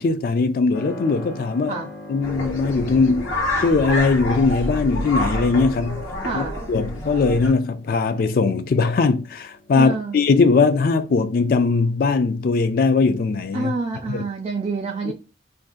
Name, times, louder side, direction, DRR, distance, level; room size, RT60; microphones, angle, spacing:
voice 1, 0.0-1.8 2.1-3.3 3.6-6.0 6.3-13.7 14.1-14.2 15.1-15.2, left 4 dB, 45° left, 0.3 m, -20 dB
Keyboard (musical), 0.7-13.1, left 1 dB, 65° left, 0.7 m, -43 dB
sound 1, 2.2-7.5, left 1 dB, 90° left, 1.1 m, -28 dB
voice 2, 6.2-6.6 9.7-10.2 13.5-15.1, right 3 dB, 30° right, 0.3 m, -27 dB
2.5 x 2.4 x 3.7 m
head